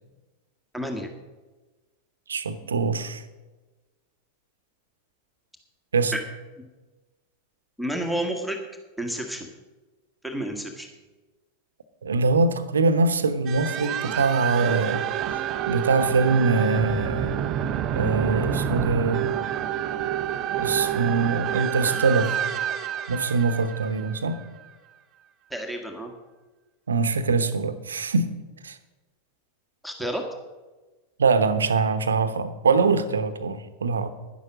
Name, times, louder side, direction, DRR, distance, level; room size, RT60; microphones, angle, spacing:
voice 1, 0.7-1.1 6.1-6.2 7.8-8.6 9.0-9.5 10.2-10.9 25.5-26.1 29.8-30.2, right 1 dB, ahead, 3 dB, 1.6 m, -30 dB
voice 2, 2.3-3.2 5.9-6.1 12.0-17.4 17.9-19.3 20.6-22.3 23.1-24.4 26.9-28.3 28.6-28.8 31.2-34.1, right 4 dB, 70° right, 11 dB, 1.0 m, -23 dB
sound 1, 13.5-24.7, right 10 dB, 35° right, 0.7 m, -28 dB
11.0 x 11.0 x 6.3 m, 1.2 s
figure-of-eight pair, 90°, 0 cm